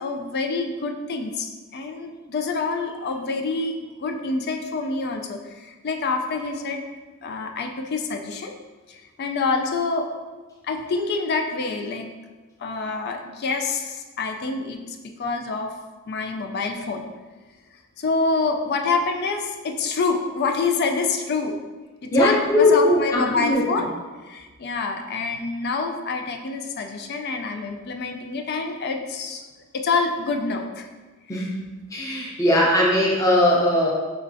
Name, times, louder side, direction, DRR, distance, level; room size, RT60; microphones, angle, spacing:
voice 1, 0.0-1.5 1.7-6.8 7.2-8.5 8.9-10.1 10.6-12.1 12.6-14.8 15.2-15.7 16.1-17.1 18.0-21.6 22.0-23.9 24.3-29.5 29.7-30.9 31.3-31.5, left 4 dB, 45° left, 4 dB, 0.4 m, -26 dB
voice 2, 22.1-23.8 31.3-31.6 31.9-33.9, left 1 dB, 15° left, -4 dB, 0.7 m, -19 dB
5.7 x 3.1 x 2.6 m, 1.3 s
head